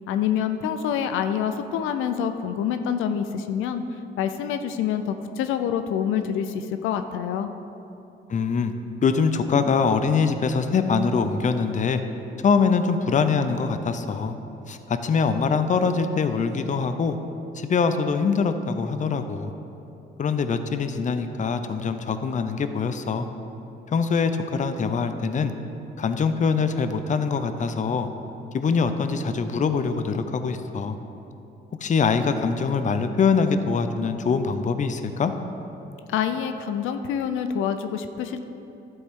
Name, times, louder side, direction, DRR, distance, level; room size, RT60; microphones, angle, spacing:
voice 1, 0.1-3.8 4.2-7.5 36.1-38.5, left 8 dB, 90° left, 8 dB, 0.5 m, -26 dB
voice 2, 8.3-8.7 9.0-12.0 12.4-14.3 14.7-17.2 17.6-19.5 20.2-23.3 23.9-25.5 26.0-28.1 28.5-31.0 31.8-35.3, left 5 dB, 40° left, 9 dB, 0.6 m, -23 dB
12.0 x 7.8 x 3.7 m, 2.9 s
cardioid pair, 90°, 20 cm